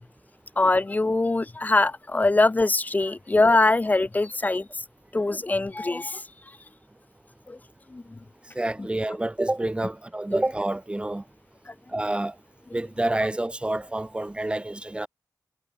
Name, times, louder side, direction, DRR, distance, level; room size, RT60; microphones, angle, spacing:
voice 1, 0.6-4.7 5.1-6.2 7.5-7.6 7.9-8.0 11.7-11.8, left 2 dB, 20° left, 1.2 m, -22 dB
voice 2, 8.5-11.2 11.9-12.3 12.7-15.1, right 1 dB, 15° right, 5.8 m, -28 dB
wide cardioid pair, 155°, 7 cm